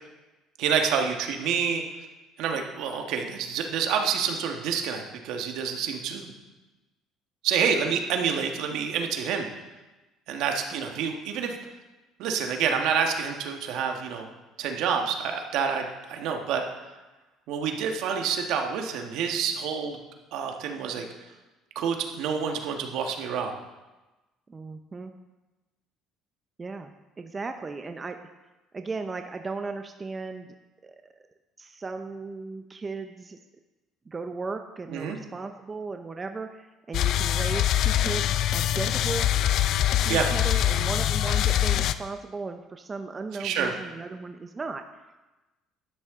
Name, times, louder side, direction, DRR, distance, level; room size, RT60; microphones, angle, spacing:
voice 1, 0.6-1.8 2.4-6.3 7.4-9.5 10.3-11.5 12.2-14.3 14.6-16.6 17.5-20.0 20.3-21.0 21.7-23.5 34.9-35.2 40.1-40.3 43.4-43.7, right 6 dB, 75° right, 3 dB, 1.5 m, -28 dB
voice 2, 24.5-25.1 26.6-26.9 27.2-28.2 28.7-30.5 30.8-31.0 31.6-33.4 34.1-39.3 40.0-44.8, right 4 dB, 25° right, 6 dB, 0.7 m, -36 dB
sound 1, 36.9-41.9, left 12 dB, 65° left, 0.5 m, -24 dB
12.0 x 9.8 x 3.7 m, 1.1 s
cardioid pair, 100°, 0 cm